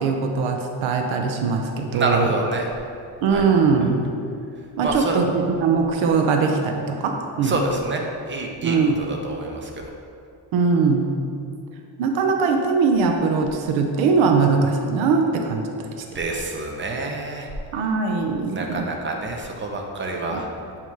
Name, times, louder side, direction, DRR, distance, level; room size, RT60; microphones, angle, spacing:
voice 1, 0.0-2.3 3.2-4.1 4.8-7.6 8.6-9.0 10.5-11.1 12.0-16.0 17.7-18.9 20.3-20.4, right 4 dB, 90° right, 3 dB, 0.7 m, -21 dB
voice 2, 1.9-2.7 3.3-3.4 4.8-5.2 7.4-8.8 9.1-9.7 16.1-17.5 18.5-20.5, right 2 dB, 25° right, 1 dB, 0.8 m, -27 dB
8.1 x 2.9 x 4.6 m, 2.5 s
cardioid pair, 100°, 45 cm